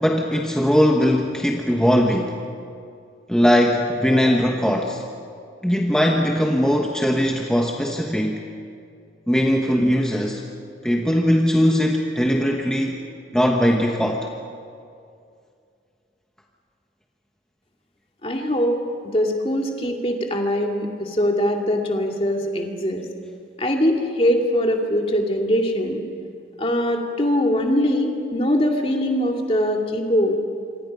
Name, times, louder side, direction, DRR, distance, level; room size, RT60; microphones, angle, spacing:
voice 1, 0.0-2.4 3.3-5.0 5.6-8.5 9.3-10.5 10.8-13.0 13.3-14.3, equal, 5° left, 0 dB, 1.1 m, -20 dB
voice 2, 18.2-23.0 23.6-26.0 26.6-30.4, equal, 30° left, 2 dB, 2.3 m, -22 dB
27.5 x 25.5 x 5.4 m, 2.4 s
head